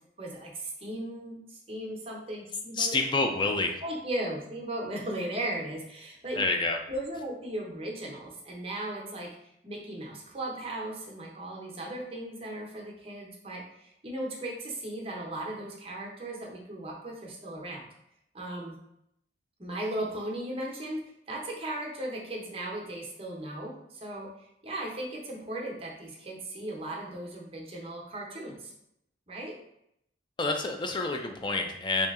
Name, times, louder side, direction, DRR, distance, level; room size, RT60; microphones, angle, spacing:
voice 1, 0.2-2.9 3.8-6.4 6.9-9.3 9.6-17.8 18.3-18.8 19.6-28.7 29.3-29.6, right 1 dB, 30° right, -1 dB, 0.7 m, -37 dB
voice 2, 2.8-3.8 6.4-6.8 30.4-32.1, left 3 dB, 25° left, 4 dB, 0.4 m, -28 dB
3.1 x 2.8 x 3.5 m, 0.78 s
head